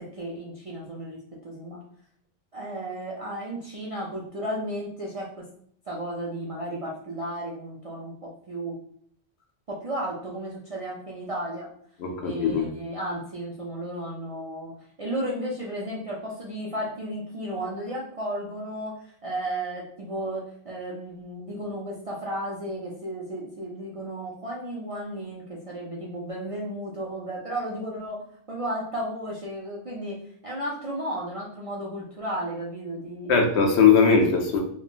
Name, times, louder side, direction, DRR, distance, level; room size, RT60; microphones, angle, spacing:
voice 1, 0.0-1.8 2.5-5.5 5.9-8.8 9.7-11.7 12.2-14.7 15.0-33.6, right 1 dB, 50° right, -5 dB, 0.4 m, -34 dB
voice 2, 12.0-12.7 33.3-34.6, left 5 dB, 75° left, 2 dB, 0.9 m, -20 dB
3.3 x 2.2 x 2.4 m, 0.64 s
omnidirectional pair, 1.2 m